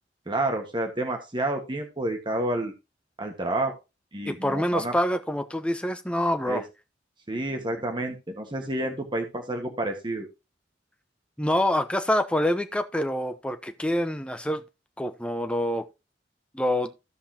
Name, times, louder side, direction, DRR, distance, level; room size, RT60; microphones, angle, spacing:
voice 1, 0.3-2.7 3.2-3.7 4.1-4.9 6.5-6.6 7.3-10.3, right 1 dB, 25° right, 1.5 m, -29 dB
voice 2, 4.3-6.6 11.4-14.6 15.0-15.9 16.5-16.9, left 1 dB, 5° left, 0.9 m, -26 dB
15.5 x 5.5 x 2.8 m
head